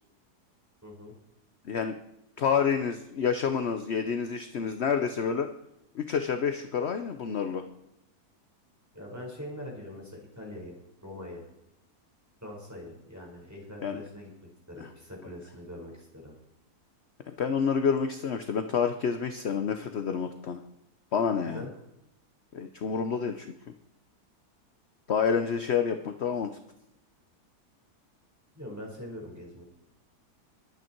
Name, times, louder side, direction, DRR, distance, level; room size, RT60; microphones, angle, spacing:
voice 1, 0.8-1.1 8.9-10.7 11.0-11.4 12.4-14.3 14.7-16.4 21.4-21.7 28.5-29.6, left 1 dB, 10° right, -2 dB, 5.3 m, -42 dB
voice 2, 1.6-1.9 2.4-5.5 5.9-7.6 13.8-14.0 14.8-14.9 17.3-20.6 21.1-21.7 22.5-23.5 25.1-26.5, left 6 dB, 50° left, 8 dB, 1.0 m, -28 dB
22.5 x 9.2 x 4.6 m, 0.85 s
omnidirectional pair, 1.7 m